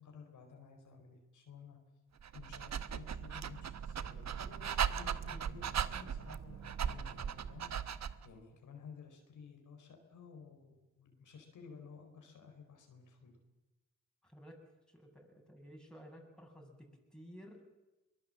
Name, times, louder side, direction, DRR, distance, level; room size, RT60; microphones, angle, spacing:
voice 1, 0.0-1.8 2.3-13.4, left 5 dB, 85° left, 3 dB, 4.3 m, -54 dB
Dog, 2.2-8.3, right 8 dB, 65° right, 1.0 m, -38 dB
voice 2, 14.2-14.6 14.9-17.6, equal, 5° left, 1 dB, 7.0 m, -54 dB
22.5 x 20.5 x 7.6 m, 1.0 s
cardioid pair, 65°, 30 cm